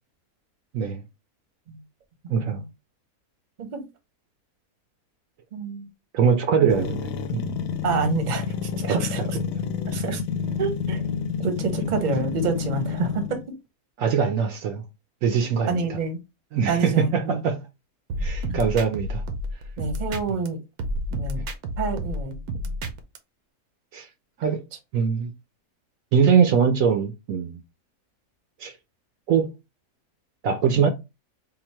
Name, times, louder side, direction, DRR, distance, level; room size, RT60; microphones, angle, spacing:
voice 1, 2.3-2.6 6.1-7.5 8.9-9.3 14.0-14.8 15.2-16.0 16.5-17.6 18.2-19.2 20.3-20.4 21.4-21.5 23.9-24.1 24.4-24.6 24.9-25.3 26.1-27.6 28.6-28.8 29.3-29.5 30.4-30.9, right 6 dB, 70° right, 0.9 m, -22 dB
voice 2, 5.5-5.9 7.8-9.4 9.9-10.2 10.6-11.0 11.4-13.4 15.7-16.2 16.7-17.4 18.5-18.6 19.8-20.6 21.1-21.4 21.8-22.8 24.5-24.6, right 4 dB, 40° right, 0.8 m, -28 dB
sound 1, 6.7-13.5, left 6 dB, 75° left, 1.0 m, -29 dB
sound 2, 18.1-20.5 20.8-23.2, equal, 85° right, 1.3 m, -30 dB
3.8 x 2.4 x 4.4 m
omnidirectional pair, 1.6 m